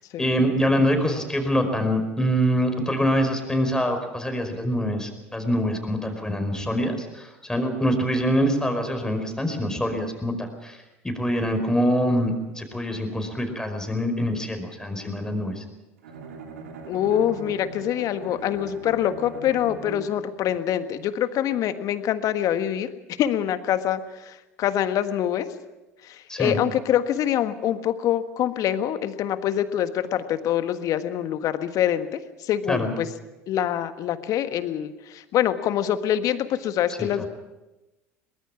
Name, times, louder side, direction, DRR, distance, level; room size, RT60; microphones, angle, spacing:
voice 1, 0.2-15.6 26.3-26.6 32.7-32.9 37.0-37.3, equal, 10° left, 5 dB, 5.0 m, -25 dB
Bowed string instrument, 16.0-20.4, right 4 dB, 75° right, 2.8 m, -40 dB
voice 2, 16.9-22.9 23.2-25.5 26.0-33.1 33.5-37.3, left 10 dB, 50° left, 10 dB, 1.5 m, -25 dB
23.0 x 20.5 x 6.1 m, 1.0 s
hypercardioid pair, 70°, 7 cm